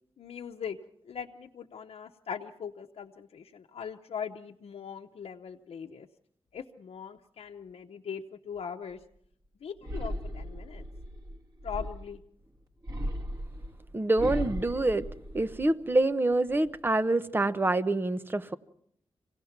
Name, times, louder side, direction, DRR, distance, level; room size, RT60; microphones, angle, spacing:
voice 1, 0.2-0.8 1.1-6.1 6.5-9.0 9.6-10.8 11.6-12.2, left 7 dB, 80° left, 0.8 m, -40 dB
sound 1, 9.8-12.2 12.8-15.9 16.3-16.9, equal, 40° right, 1.8 m, -37 dB
voice 2, 13.9-15.1 15.3-18.5, right 2 dB, 20° right, 0.8 m, -26 dB
26.0 x 17.5 x 5.8 m
wide cardioid pair, 145°, 10 cm